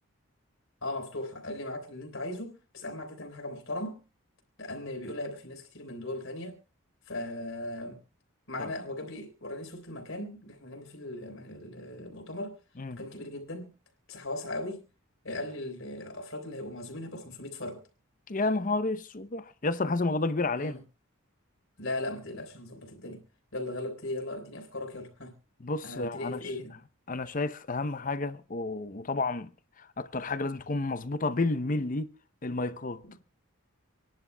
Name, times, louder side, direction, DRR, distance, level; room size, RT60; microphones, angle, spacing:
voice 1, 0.8-4.0 4.6-6.6 7.1-8.0 8.5-12.6 13.0-13.7 14.1-14.8 15.2-17.8 20.6-20.8 21.8-23.2 23.5-25.4 25.8-26.7 33.0-33.2, left 1 dB, 65° left, 3.9 m, -38 dB
voice 2, 18.3-20.7 25.6-26.4 27.1-29.5 29.8-32.1 32.4-33.0, left 3 dB, 40° left, 0.7 m, -31 dB
27.0 x 11.0 x 2.2 m
head